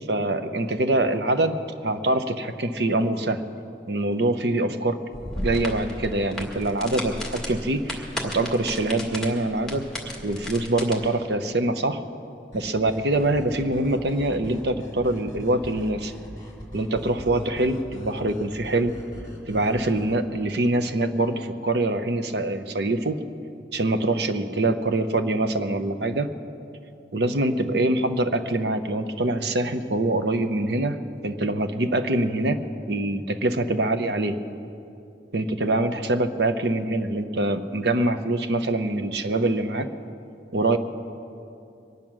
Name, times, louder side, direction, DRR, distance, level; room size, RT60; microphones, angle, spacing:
voice 1, 0.1-1.6 1.8-3.4 3.9-5.0 5.4-9.9 10.2-12.0 12.5-16.1 16.7-19.0 19.5-23.2 23.7-26.3 27.1-31.0 31.2-32.6 32.9-34.4 35.3-39.9 40.5-40.8, right 2 dB, 65° right, 9 dB, 0.8 m, -24 dB
sound 1, 5.1-10.9, left 1 dB, 5° left, 1.6 m, -34 dB
sound 2, 12.5-20.1, equal, 20° left, 2.6 m, -40 dB
23.0 x 9.0 x 6.2 m, 2.6 s
head